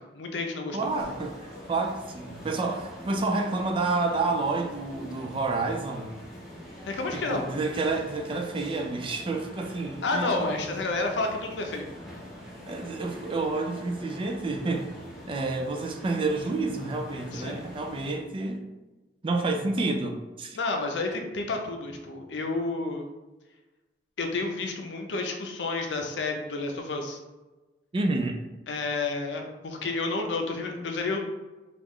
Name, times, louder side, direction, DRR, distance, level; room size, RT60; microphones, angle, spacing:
voice 1, 0.1-0.8 6.9-7.4 10.0-11.8 17.3-17.6 20.6-23.0 24.2-27.2 28.7-31.2, left 3 dB, 85° left, 3 dB, 0.5 m, -30 dB
voice 2, 0.7-6.1 7.1-10.5 12.6-14.9 15.3-18.7 19.2-20.6 21.1-21.2 27.9-28.4, right 3 dB, 30° right, 3 dB, 0.3 m, -29 dB
sound 1, 0.8-18.1, equal, ahead, 0.7 m, -44 dB
3.0 x 2.4 x 3.6 m, 1.1 s
head